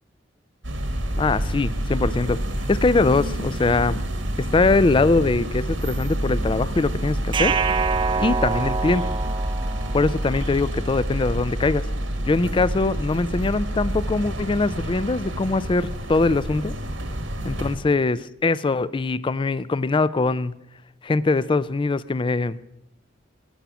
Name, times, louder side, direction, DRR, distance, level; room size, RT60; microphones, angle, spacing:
sound 1, 0.6-17.8, equal, 85° right, 1.7 m, -28 dB
voice 1, 1.2-2.4 2.7-4.0 4.4-7.6 8.2-9.1 9.9-11.9 12.2-16.8 17.5-20.5 21.0-22.6, left 3 dB, 25° left, 0.4 m, -22 dB
sound 2, 7.3-10.4, right 5 dB, 25° right, 0.5 m, -26 dB
12.5 x 10.5 x 6.0 m
head